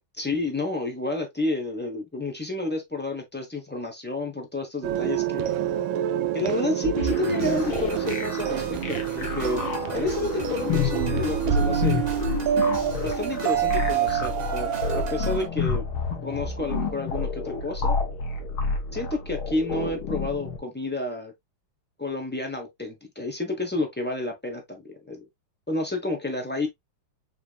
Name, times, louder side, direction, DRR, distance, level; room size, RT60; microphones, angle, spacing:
voice 1, 0.1-5.5 6.3-9.6 9.9-12.0 13.0-15.9 16.2-18.0 18.9-21.3 22.0-25.3 25.7-26.7, left 2 dB, 10° left, 0.5 m, -30 dB
sound 1, 4.8-15.5, right 10 dB, 75° right, 1.4 m, -27 dB
sound 2, 7.0-20.6, left 5 dB, 85° left, 2.0 m, -30 dB
sound 3, 7.1-15.4, right 5 dB, 45° right, 0.5 m, -40 dB
6.0 x 3.4 x 2.4 m
omnidirectional pair, 2.3 m